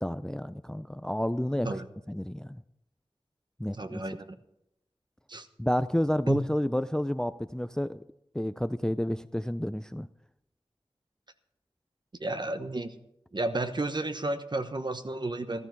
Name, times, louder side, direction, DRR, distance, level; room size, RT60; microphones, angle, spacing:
voice 1, 0.0-1.7 2.1-2.6 3.6-4.0 5.6-8.0 8.3-10.1, equal, 5° left, 14 dB, 0.4 m, -30 dB
voice 2, 3.7-4.4 5.3-5.5 6.3-6.4 12.2-12.9 13.3-15.7, right 2 dB, 45° right, 9 dB, 1.1 m, -32 dB
14.0 x 13.0 x 4.7 m, 0.81 s
wide cardioid pair, 55°, 11 cm